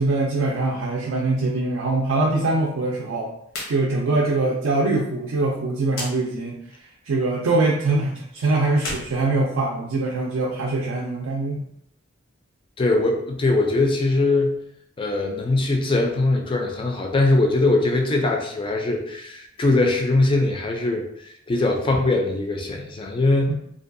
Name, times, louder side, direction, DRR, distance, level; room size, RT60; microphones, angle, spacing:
voice 1, 0.0-3.3 3.7-6.6 7.1-11.6 23.5-23.6, right 2 dB, 80° right, -2 dB, 0.4 m, -23 dB
sound 1, 3.5-3.8 4.1-4.2 5.9-6.1 8.7-10.0, left 2 dB, 80° left, 0.7 m, -33 dB
voice 2, 12.8-14.6 15.0-23.5, left 2 dB, 25° left, 3 dB, 0.3 m, -21 dB
2.6 x 2.2 x 2.5 m, 0.72 s
head